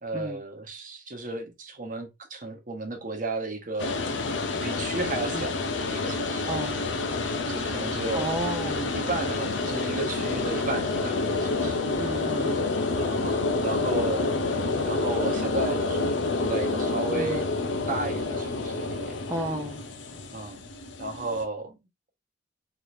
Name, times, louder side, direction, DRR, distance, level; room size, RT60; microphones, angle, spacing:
voice 1, 0.0-4.0 4.6-5.6 5.8-6.5 7.5-8.4 8.9-11.8 12.9-14.3 14.8-16.1 16.4-17.5 17.9-19.2 20.3-20.7 21.0-21.8, right 3 dB, 45° right, 0.9 m, -33 dB
sound 1, 3.8-21.4, left 3 dB, 80° left, 0.6 m, -28 dB
voice 2, 8.1-8.9 12.0-12.6 17.1-17.4 19.3-19.8, right 1 dB, 15° right, 0.5 m, -32 dB
3.5 x 3.2 x 2.6 m
head